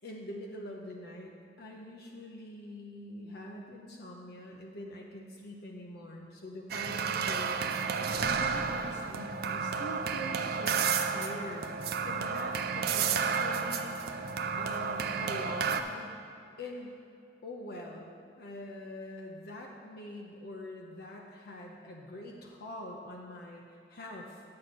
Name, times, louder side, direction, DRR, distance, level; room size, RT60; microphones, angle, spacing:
voice 1, 0.0-1.3 1.6-11.7 12.0-16.2 16.6-17.0 17.4-18.1 18.4-24.4, left 1 dB, 60° left, 0 dB, 0.8 m, -44 dB
sound 1, 6.7-15.8, right 6 dB, 55° right, 0.5 m, -31 dB
9.6 x 7.5 x 4.3 m, 2.6 s
head